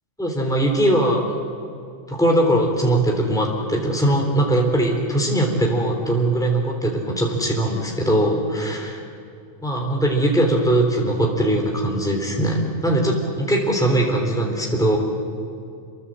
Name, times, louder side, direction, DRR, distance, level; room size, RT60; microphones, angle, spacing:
voice 1, 0.2-1.2 2.1-9.0 9.6-15.0, right 1 dB, 5° left, 0 dB, 3.5 m, -20 dB
28.5 x 22.5 x 7.6 m, 2.4 s
omnidirectional pair, 1.3 m